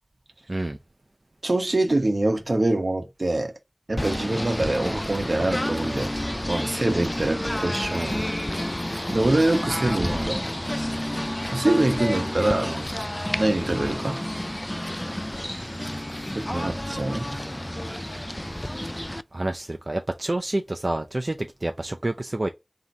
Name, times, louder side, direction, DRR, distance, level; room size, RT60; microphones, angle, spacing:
voice 1, 1.4-3.5 3.9-6.1 6.5-7.9 9.1-10.4 11.5-12.7 13.4-14.2 16.3-17.3, right 2 dB, 85° right, 1.0 m, -24 dB
Singing / Bird, 3.9-19.2, left 1 dB, 20° left, 0.3 m, -30 dB
voice 2, 7.9-8.2 10.1-10.4 12.6-12.9 16.1-16.7 19.3-22.5, right 2 dB, 55° right, 0.5 m, -29 dB
3.7 x 2.6 x 4.1 m
wide cardioid pair, 40°, 0 cm